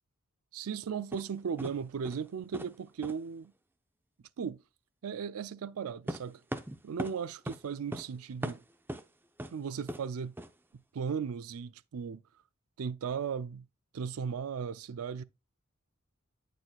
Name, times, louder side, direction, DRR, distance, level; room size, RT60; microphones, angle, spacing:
voice 1, 0.5-3.5 4.4-4.6 5.0-6.4 6.8-8.6 9.5-10.3 10.9-12.2 12.8-13.6 13.9-15.2, right 6 dB, 85° right, 0.4 m, -36 dB
sound 1, 1.1-1.2 1.6-1.8 2.0-2.3 2.5-2.7 3.0-3.2 6.1-7.2 7.5-7.6 7.9-8.1 8.4-9.0 9.4-9.5 9.9-10.0 10.4-10.5, right 1 dB, 10° right, 0.6 m, -38 dB
8.8 x 6.5 x 2.2 m
head